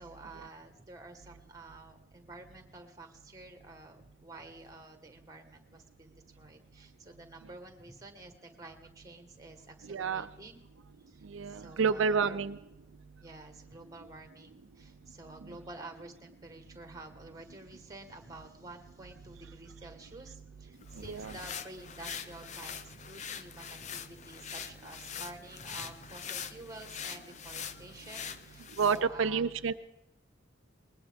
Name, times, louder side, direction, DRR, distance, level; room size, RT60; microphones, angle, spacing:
voice 1, 0.0-10.6 11.1-12.4 13.2-29.5, right 2 dB, 15° right, 6 dB, 1.4 m, -50 dB
voice 2, 9.9-10.3 11.3-12.6 21.1-21.3 28.8-29.7, right 5 dB, 75° right, 10 dB, 0.5 m, -29 dB
sound 1, 20.8-29.0, left 7 dB, 35° left, 0.5 m, -43 dB
20.0 x 19.5 x 3.5 m, 0.88 s
head